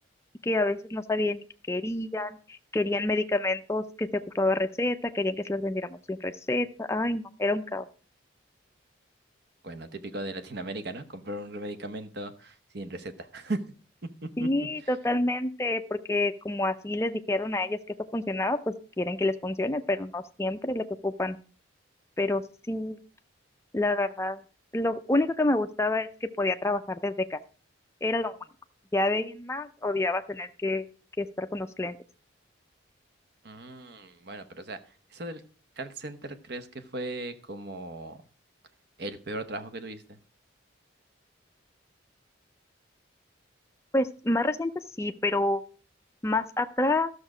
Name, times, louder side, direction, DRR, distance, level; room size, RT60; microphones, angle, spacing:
voice 1, 0.4-2.4 2.7-7.9 14.4-17.8 18.1-21.4 22.2-23.0 23.7-24.4 24.7-27.4 28.0-28.3 28.9-30.9 31.2-32.0 43.9-45.6 46.2-47.1, left 2 dB, 15° left, 7 dB, 0.4 m, -28 dB
voice 2, 9.6-13.6 14.2-14.5 14.8-14.9 33.4-35.4 35.8-38.2 39.0-40.2, right 2 dB, 55° right, 10 dB, 0.9 m, -37 dB
13.0 x 6.4 x 4.9 m, 0.40 s
head